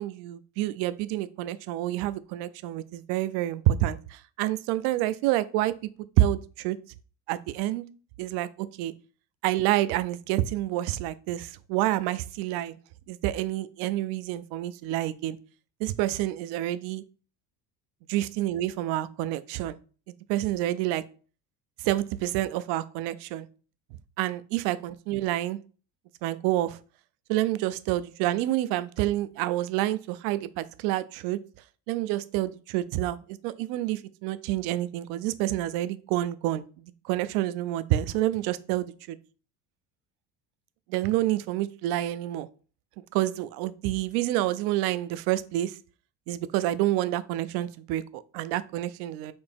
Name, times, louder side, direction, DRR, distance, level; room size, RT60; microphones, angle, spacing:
voice 1, 0.0-5.7 6.2-6.8 7.3-7.9 8.2-8.9 9.4-12.7 13.1-15.4 15.8-17.0 18.1-19.8 20.1-21.0 21.8-23.5 24.2-25.6 26.2-26.8 27.3-31.4 31.9-38.9 40.9-42.5 43.1-45.7 46.3-49.3, right 14 dB, 80° right, 15 dB, 0.5 m, -28 dB
4.3 x 2.8 x 3.5 m, 0.38 s
cardioid pair, 155°, 39 cm